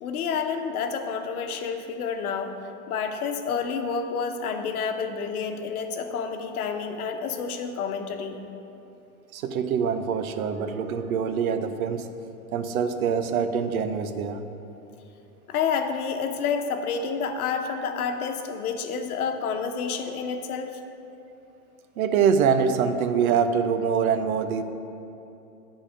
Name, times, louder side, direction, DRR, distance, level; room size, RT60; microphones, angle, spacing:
voice 1, 0.0-2.6 2.9-8.4 15.5-20.8, left 6 dB, 80° left, 5 dB, 1.0 m, -29 dB
voice 2, 9.3-12.1 12.5-14.4 22.0-24.6, right 6 dB, 75° right, 9 dB, 0.7 m, -24 dB
10.0 x 4.2 x 6.2 m, 2.8 s
supercardioid pair, 155°, 43 cm